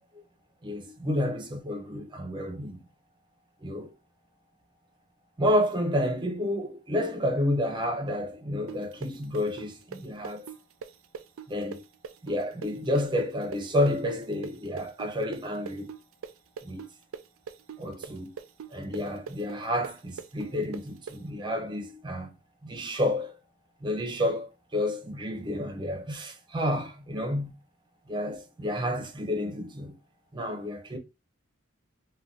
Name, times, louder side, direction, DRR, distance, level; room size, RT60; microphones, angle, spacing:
voice 1, 0.6-2.8 3.6-3.9 5.4-10.5 11.5-11.8 12.2-15.9 16.6-16.9 17.8-18.3 18.7-22.3 22.6-23.3 23.8-27.5 28.1-30.0 30.3-31.0, left 1 dB, 25° right, 0.5 m, -30 dB
sound 1, 8.7-16.3 16.6-21.2, right 6 dB, 85° right, 0.4 m, -41 dB
2.5 x 2.2 x 3.7 m
head